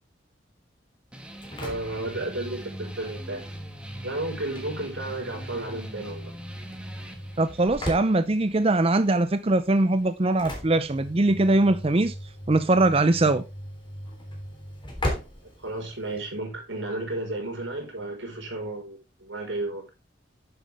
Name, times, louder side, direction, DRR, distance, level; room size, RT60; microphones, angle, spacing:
sound 1, 1.1-10.2, right 1 dB, 5° right, 1.7 m, -45 dB
Engine / Slam, 1.2-16.3, equal, 25° left, 3.6 m, -38 dB
voice 1, 1.6-3.5 4.0-6.3 15.4-19.9, right 2 dB, 90° right, 5.0 m, -33 dB
voice 2, 7.4-12.1 12.5-13.4, right 2 dB, 30° right, 0.6 m, -21 dB
10.0 x 8.1 x 3.5 m
head